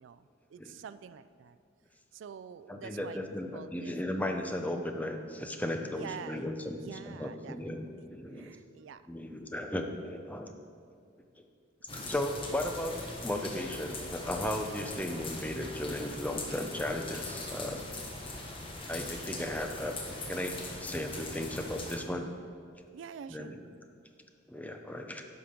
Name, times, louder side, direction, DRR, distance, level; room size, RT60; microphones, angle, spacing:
voice 1, 0.0-1.6 2.1-3.2 3.5-3.9 5.9-7.6 8.3-9.0 9.4-9.7 11.9-12.1 22.9-23.5, right 7 dB, 70° right, 13 dB, 0.3 m, -47 dB
voice 2, 2.7-8.5 9.1-10.5 11.4-11.5 11.9-12.9 13.2-17.8 18.9-22.3 23.3-23.6 24.5-25.2, left 1 dB, 10° left, 4 dB, 0.5 m, -36 dB
sound 1, 11.9-22.0, left 2 dB, 25° left, 1.1 m, -41 dB
11.0 x 5.9 x 5.0 m, 2.3 s
head